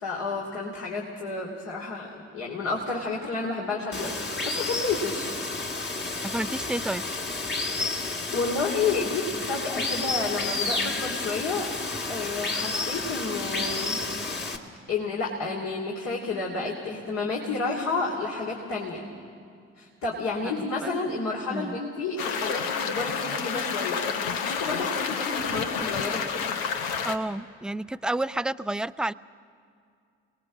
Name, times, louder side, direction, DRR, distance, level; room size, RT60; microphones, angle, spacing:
voice 1, 0.0-5.3 8.3-11.7 12.1-14.0 14.9-19.0 19.8-24.0 24.4-26.2, left 3 dB, 60° left, -3 dB, 2.9 m, -30 dB
Water, 3.9-14.6, left 3 dB, 35° left, 2.1 m, -31 dB
voice 2, 6.2-7.0 20.8-20.9 21.5-21.8 27.0-29.1, right 1 dB, 5° right, 15 dB, 0.4 m, -30 dB
sound 1, 22.2-27.2, left 6 dB, 75° left, 1.0 m, -29 dB
27.5 x 19.5 x 6.2 m, 2.3 s
figure-of-eight pair, 40°, 31 cm